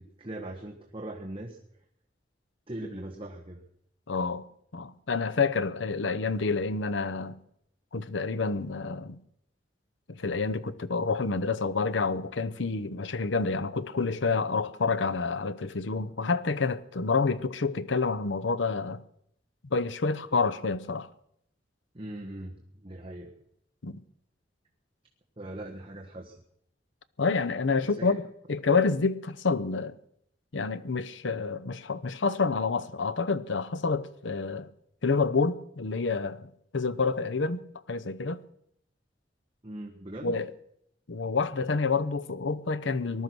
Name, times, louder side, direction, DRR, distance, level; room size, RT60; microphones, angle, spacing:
voice 1, 0.0-1.6 2.7-3.6 21.9-23.3 25.4-26.4 28.0-28.1 39.6-40.4, right 1 dB, 30° right, 1.4 m, -40 dB
voice 2, 4.1-4.4 4.7-7.4 7.9-9.2 10.1-19.0 19.7-21.1 23.8-24.0 27.2-28.2 28.5-30.0 30.5-34.7 35.0-36.5 36.7-37.6 37.9-38.4 40.2-40.5 41.1-43.2, left 4 dB, 85° left, 0.8 m, -28 dB
19.5 x 12.0 x 6.2 m
head